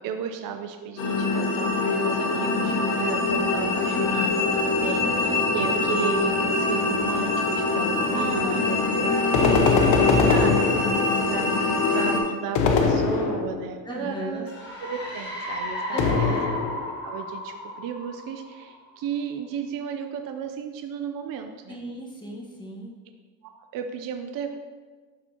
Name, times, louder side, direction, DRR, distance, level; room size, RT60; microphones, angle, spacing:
voice 1, 0.0-9.6 10.3-10.7 11.3-11.6 11.9-14.5 14.8-16.3 17.0-21.8 23.5-24.6, right 7 dB, 50° right, 6 dB, 0.6 m, -34 dB
sound 1, 1.0-12.2, left 3 dB, 85° left, 1.4 m, -24 dB
voice 2, 5.0-5.3 7.9-10.7 13.8-14.4 15.9-16.4 21.7-22.9, left 1 dB, 10° left, -3 dB, 1.4 m, -36 dB
sound 2, 9.3-11.3 12.5-13.8 16.0-17.0, left 5 dB, 70° left, 0.9 m, -22 dB
sound 3, 14.5-19.0, left 1 dB, 25° left, 1.5 m, -34 dB
11.5 x 4.3 x 2.8 m, 1.4 s
cardioid pair, 130°, 43 cm